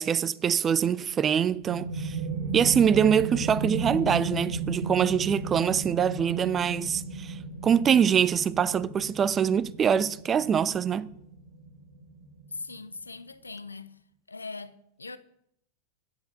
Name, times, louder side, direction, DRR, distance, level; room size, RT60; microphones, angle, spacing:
voice 1, 0.0-2.2 2.5-11.1, right 8 dB, 25° right, 0.5 m, -24 dB
sound 1, 1.5-12.8, right 3 dB, 65° right, 1.6 m, -35 dB
voice 2, 12.5-14.0 14.3-15.2, left 3 dB, 80° left, 0.7 m, -40 dB
8.9 x 8.1 x 7.6 m
figure-of-eight pair, 90°, 0 cm